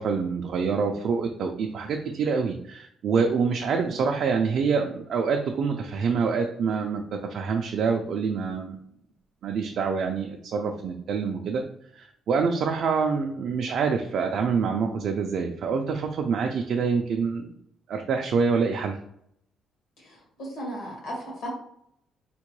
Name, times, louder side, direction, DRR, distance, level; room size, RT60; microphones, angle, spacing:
voice 1, 0.0-8.8 9.4-11.6 11.9-17.5 17.9-19.0, right 5 dB, 55° right, 2 dB, 0.3 m, -26 dB
voice 2, 20.0-21.5, equal, 70° left, -2 dB, 1.4 m, -37 dB
3.6 x 2.2 x 3.0 m, 0.71 s
cardioid pair, 160°, 0 cm